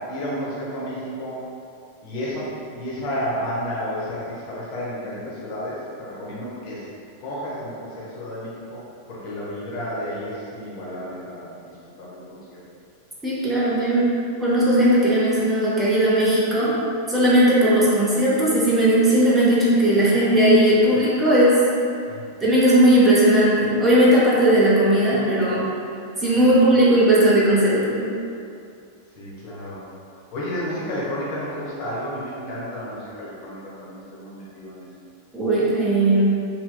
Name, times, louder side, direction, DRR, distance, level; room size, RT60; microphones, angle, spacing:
voice 1, 0.0-1.4 2.0-6.8 7.2-8.8 9.1-11.5 11.8-12.6 20.3-20.4 22.1-22.3 29.2-29.8 30.2-34.9, equal, 45° left, -7 dB, 0.8 m, -31 dB
voice 2, 13.2-14.1 14.4-16.7 17.1-21.6 22.4-25.6 26.2-28.0 35.3-36.3, right 1 dB, 10° right, -8 dB, 0.7 m, -17 dB
3.3 x 2.8 x 2.3 m, 2.5 s
figure-of-eight pair, 90°, 0 cm